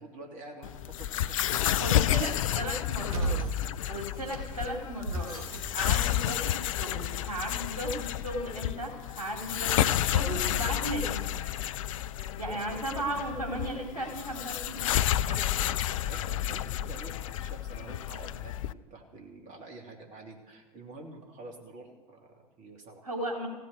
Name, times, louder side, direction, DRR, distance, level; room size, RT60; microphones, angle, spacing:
voice 1, 0.0-2.5 12.5-12.8 16.0-23.1, right 2 dB, 40° right, 1 dB, 2.9 m, -48 dB
sound 1, 0.6-18.7, left 12 dB, 60° left, 0.5 m, -31 dB
sound 2, 1.7-2.2 3.0-3.7 4.1-5.8, right 2 dB, 65° right, 4.9 m, -35 dB
voice 2, 1.8-3.4 3.9-5.3 5.7-11.3 12.4-15.5 23.0-23.5, right 1 dB, 85° right, -1 dB, 3.3 m, -36 dB
16.5 x 7.6 x 9.3 m, 1.4 s
figure-of-eight pair, 80°, 19 cm